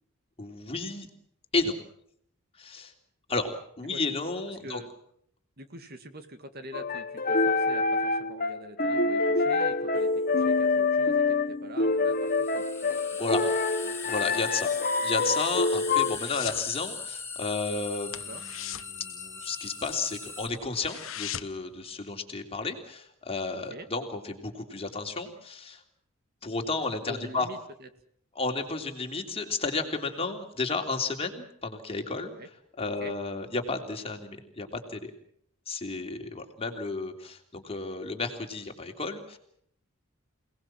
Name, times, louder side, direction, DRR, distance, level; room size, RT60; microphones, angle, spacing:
voice 1, 0.4-1.1 1.5-1.8 2.6-2.9 3.3-3.5 3.8-4.8 13.2-13.4 14.0-14.7 15.0-25.8 26.4-27.5 28.3-32.3 32.8-35.1 35.7-39.4, left 3 dB, 30° left, 4 dB, 3.3 m, -32 dB
voice 2, 3.8-4.2 4.5-4.9 5.6-13.3 13.8-14.0 18.3-18.4 23.5-23.9 26.9-27.9 32.2-32.5 33.0-33.1, right 1 dB, 50° right, 8 dB, 2.1 m, -45 dB
sound 1, 6.7-16.2, left 3 dB, 45° left, 1.2 m, -26 dB
sound 2, 10.0-10.1 12.1-20.5, left 5 dB, 10° left, 5.8 m, -40 dB
sound 3, 15.5-16.7 17.0-17.3 17.5-17.7 18.0-19.9 20.3-20.4 20.6-21.7 22.1-22.2, left 11 dB, 65° left, 1.1 m, -39 dB
28.0 x 19.0 x 7.6 m, 0.69 s
head